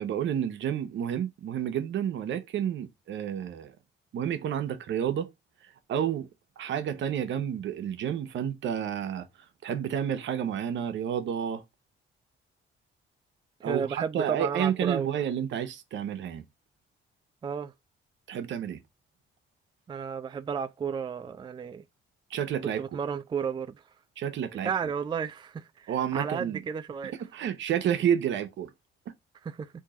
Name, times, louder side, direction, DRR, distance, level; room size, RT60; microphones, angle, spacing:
voice 1, 0.0-3.7 4.1-5.3 5.9-6.3 6.6-9.3 9.6-11.6 13.6-16.4 18.3-18.8 22.3-22.8 24.2-24.7 25.9-26.6 27.2-28.7, right 9 dB, 70° right, 0.8 m, -30 dB
voice 2, 13.6-15.1 17.4-17.7 19.9-21.8 22.8-23.8 24.6-27.1 29.6-29.7, right 7 dB, 25° right, 0.3 m, -32 dB
3.7 x 2.8 x 4.7 m
cardioid pair, 90°, 20 cm